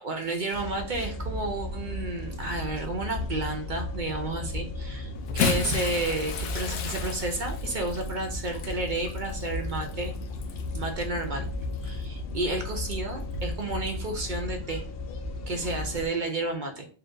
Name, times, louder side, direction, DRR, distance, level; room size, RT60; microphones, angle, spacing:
voice 1, 0.0-10.1 10.7-11.5 11.8-14.8 15.5-16.9, right 2 dB, 50° right, 4 dB, 0.6 m, -31 dB
sound 1, 0.5-16.1, left 2 dB, 55° left, 0.7 m, -35 dB
Bathtub (filling or washing) / Splash splatter, 5.2-10.8 11.7-11.9 13.3-13.4, left 5 dB, 85° left, 1.1 m, -34 dB
4.3 x 2.5 x 3.8 m, 0.41 s
omnidirectional pair, 1.4 m